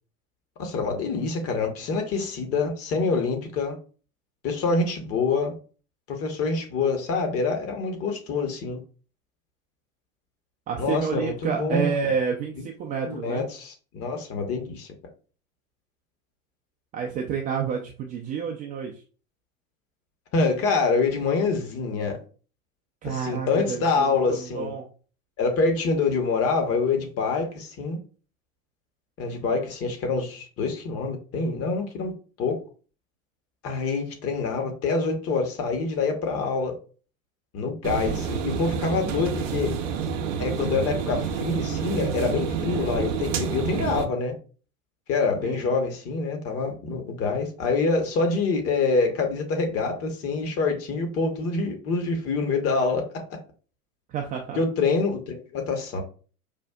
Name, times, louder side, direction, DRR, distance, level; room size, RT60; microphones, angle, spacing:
voice 1, 0.6-3.8 4.4-5.5 6.1-8.8 10.8-11.9 13.0-14.9 20.3-22.2 23.0-24.7 25.4-28.0 29.2-32.1 32.4-32.6 33.6-36.8 37.5-39.7 40.4-44.3 45.1-53.2 54.6-56.0, left 4 dB, 35° left, 4 dB, 1.0 m, -26 dB
voice 2, 10.7-13.4 16.9-19.0 23.0-24.9 45.4-45.7 54.1-54.6, right 6 dB, 20° right, 1 dB, 0.3 m, -29 dB
sound 1, 37.8-44.0, right 6 dB, 60° right, 0.7 m, -28 dB
5.1 x 2.4 x 2.3 m, 0.38 s
figure-of-eight pair, 80°, 42 cm